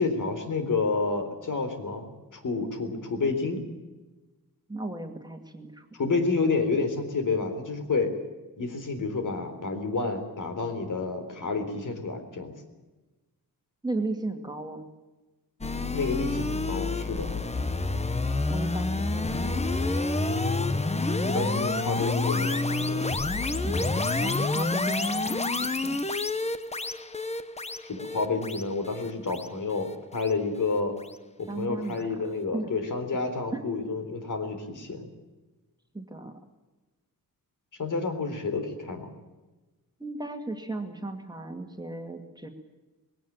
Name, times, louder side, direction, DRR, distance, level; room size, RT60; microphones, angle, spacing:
voice 1, 0.0-3.6 5.9-8.1 8.6-12.5 15.9-17.3 21.2-23.1 27.9-31.0 31.4-35.1 37.8-39.1, left 4 dB, 60° left, 6 dB, 3.9 m, -29 dB
voice 2, 4.7-5.9 13.8-14.9 18.5-20.1 23.6-26.0 31.5-32.0 32.5-32.7 33.5-33.8 35.9-36.4 40.0-42.5, right 2 dB, 10° right, 4 dB, 2.1 m, -36 dB
sound 1, 15.6-30.8, left 3 dB, 20° left, 1.0 m, -28 dB
20.5 x 17.5 x 8.8 m, 1.2 s
wide cardioid pair, 145°, 36 cm